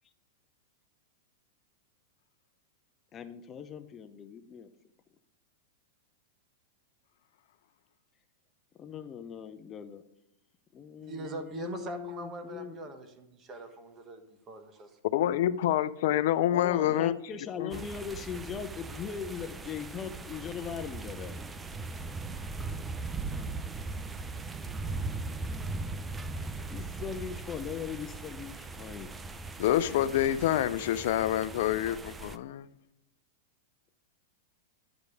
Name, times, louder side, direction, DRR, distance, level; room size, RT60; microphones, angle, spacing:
voice 1, 3.1-4.7 8.8-10.0 10.7-13.0 16.5-21.4 26.7-29.2, left 7 dB, 25° left, 0.7 m, -40 dB
voice 2, 11.0-14.9, right 2 dB, 30° right, 1.4 m, -42 dB
voice 3, 15.1-17.2 17.6-17.8 29.6-32.7, left 12 dB, 65° left, 0.4 m, -27 dB
sound 1, 17.7-32.4, right 3 dB, 15° right, 0.5 m, -39 dB
11.0 x 5.1 x 4.9 m
hypercardioid pair, 120°, 0 cm